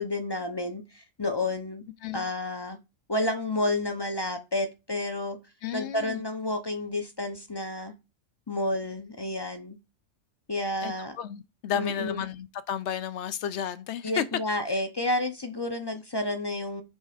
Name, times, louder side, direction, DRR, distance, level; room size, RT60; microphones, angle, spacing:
voice 1, 0.0-1.8 2.1-2.8 3.1-5.4 5.7-7.9 8.5-9.8 10.5-11.2 11.7-12.2 14.0-16.8, left 2 dB, 30° left, 0.5 m, -30 dB
voice 2, 5.6-6.2 10.8-14.2 14.7-14.8, left 9 dB, 65° left, 0.8 m, -33 dB
7.1 x 3.3 x 4.9 m
omnidirectional pair, 1.3 m